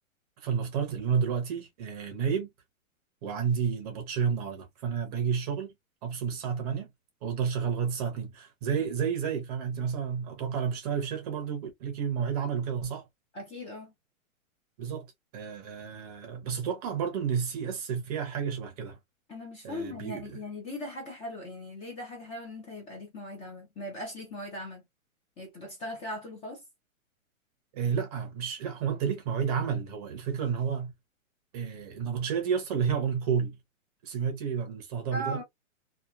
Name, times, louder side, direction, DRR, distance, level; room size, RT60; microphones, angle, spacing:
voice 1, 0.4-2.5 3.2-5.7 6.0-6.9 7.2-13.0 14.8-15.1 15.3-19.0 19.6-20.4 27.7-30.9 31.5-33.6 34.0-35.4, right 7 dB, 30° right, 0.7 m, -31 dB
voice 2, 13.3-13.9 19.3-24.8 25.4-26.6 35.1-35.4, left 1 dB, 15° left, 0.6 m, -39 dB
2.8 x 2.2 x 2.3 m
hypercardioid pair, 150°, 41 cm